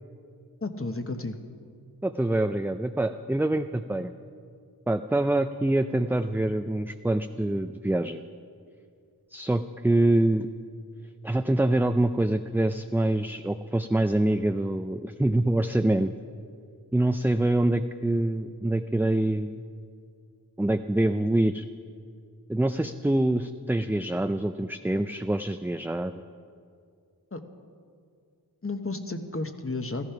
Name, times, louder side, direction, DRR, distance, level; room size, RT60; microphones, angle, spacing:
voice 1, 0.6-1.4 27.3-27.4 28.6-30.1, left 2 dB, 35° left, 7 dB, 1.1 m, -32 dB
voice 2, 2.0-4.1 4.9-8.2 9.3-10.5 11.2-16.1 16.9-19.6 20.6-21.6 22.5-26.1, right 1 dB, 5° right, 8 dB, 0.4 m, -25 dB
14.5 x 14.0 x 5.8 m, 2.2 s
wide cardioid pair, 45°, 39 cm